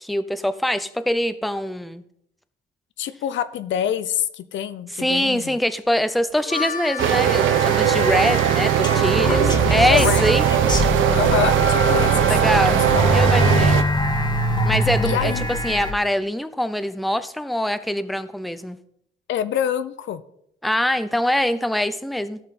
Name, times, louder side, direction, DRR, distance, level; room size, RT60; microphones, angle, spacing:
voice 1, 0.0-2.0 5.0-10.4 12.3-12.8 13.1-13.8 14.6-15.3 15.6-18.8 20.6-22.4, left 1 dB, ahead, 12 dB, 0.6 m, -23 dB
voice 2, 3.0-5.6 9.2-10.2 11.1-13.1 15.0-15.5 19.3-20.2, left 9 dB, 70° left, 13 dB, 0.7 m, -26 dB
Harmonica, 6.2-11.1, left 6 dB, 45° left, 0.8 m, -34 dB
sound 1, 7.0-13.8, right 11 dB, 85° right, 0.7 m, -19 dB
sound 2, 7.2-15.9, left 1 dB, 20° left, 1.5 m, -24 dB
16.0 x 5.6 x 4.2 m, 0.73 s
cardioid pair, 90°, 20 cm